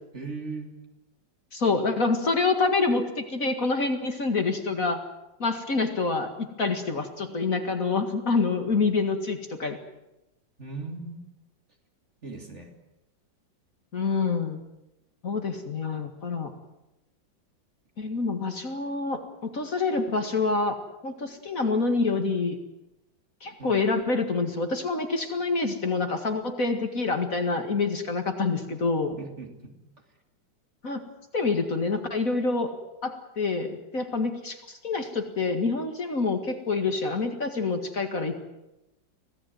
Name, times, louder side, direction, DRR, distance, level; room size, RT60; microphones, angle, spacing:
voice 1, 0.1-0.7 10.6-11.2 12.2-12.7 23.6-23.8 29.2-29.8, right 3 dB, 35° right, 3 dB, 3.3 m, -38 dB
voice 2, 1.5-5.0 5.4-9.8 13.9-14.6 15.2-16.5 18.0-20.8 21.0-22.6 23.4-29.2 30.8-31.0 31.3-32.7 33.0-38.4, left 3 dB, 45° left, 6 dB, 2.3 m, -27 dB
25.5 x 17.5 x 9.4 m, 0.93 s
omnidirectional pair, 2.1 m